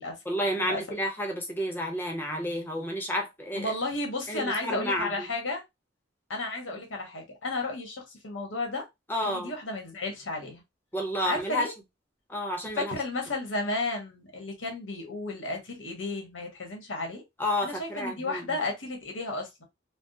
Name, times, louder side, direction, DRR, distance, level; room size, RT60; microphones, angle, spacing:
voice 1, 0.3-3.7 4.3-5.3 9.1-9.5 10.9-11.7 12.3-12.9 17.4-18.4, equal, 10° left, 0.7 m, -30 dB
voice 2, 3.5-5.6 6.3-8.8 9.2-10.6 11.2-11.7 12.7-17.2 17.6-19.6, left 2 dB, 90° left, 1.1 m, -33 dB
3.4 x 2.0 x 2.7 m
head